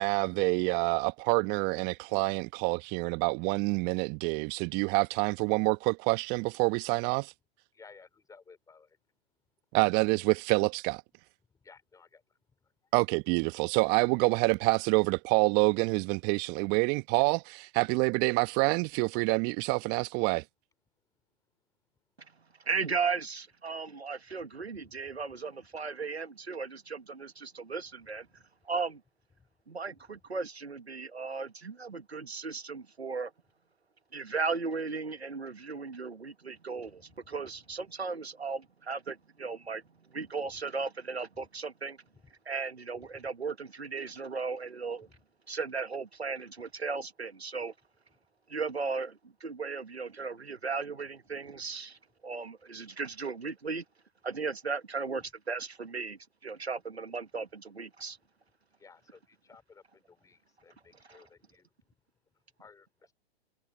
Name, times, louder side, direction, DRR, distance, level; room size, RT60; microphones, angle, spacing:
voice 1, 0.0-7.3 9.7-11.0 12.9-20.4, right 29 dB, 30° right, 1.1 m, -27 dB
voice 2, 7.8-8.9 11.6-12.2 58.8-59.2 59.5-59.8 60.1-61.7 62.6-62.9, left 5 dB, 10° left, 3.1 m, -56 dB
voice 3, 22.6-28.3 28.6-29.0 29.7-33.3 34.1-39.8 40.1-42.0 42.4-45.1 45.5-47.7 48.5-53.8 54.2-58.2 61.0-61.2, right 4 dB, 90° right, 1.6 m, -36 dB
figure-of-eight pair, 115°, 31 cm